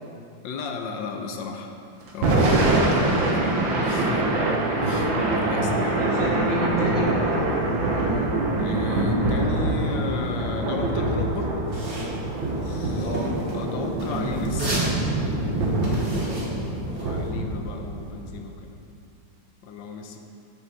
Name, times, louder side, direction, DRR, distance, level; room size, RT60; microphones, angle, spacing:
voice 1, 0.4-1.7 2.1-4.3 4.8-6.0 8.6-11.6 12.6-18.8 19.6-20.2, left 4 dB, 80° left, 4 dB, 1.4 m, -35 dB
Thunder / Rain, 2.1-18.3, right 2 dB, 85° right, 2.0 m, -24 dB
Chicken rooster, 5.4-8.3, left 1 dB, 20° left, 1.3 m, -43 dB
voice 2, 5.7-7.4 12.9-13.3, right 1 dB, 30° right, -6 dB, 2.0 m, -29 dB
sound 1, 11.7-17.3, right 2 dB, 70° right, 2.8 m, -33 dB
13.5 x 7.0 x 3.9 m, 2.5 s
omnidirectional pair, 2.1 m